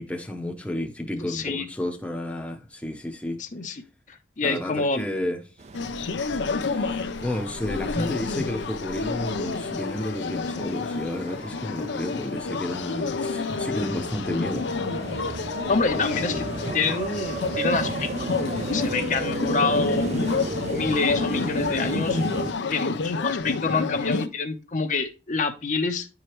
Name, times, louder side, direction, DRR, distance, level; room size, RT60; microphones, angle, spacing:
voice 1, 0.0-3.4 4.4-5.4 6.5-14.7 15.1-15.2, left 1 dB, 5° left, 0.7 m, -31 dB
voice 2, 1.2-1.6 3.4-3.8 4.4-5.1 7.9-8.1 15.7-16.5 16.7-18.1 18.7-20.2 20.7-22.2 22.7-26.1, left 4 dB, 45° left, 0.7 m, -27 dB
sound 1, 5.6-22.5, right 2 dB, 35° right, 0.4 m, -35 dB
sound 2, 5.7-24.3, left 4 dB, 85° left, 0.6 m, -29 dB
9.9 x 4.8 x 3.0 m
head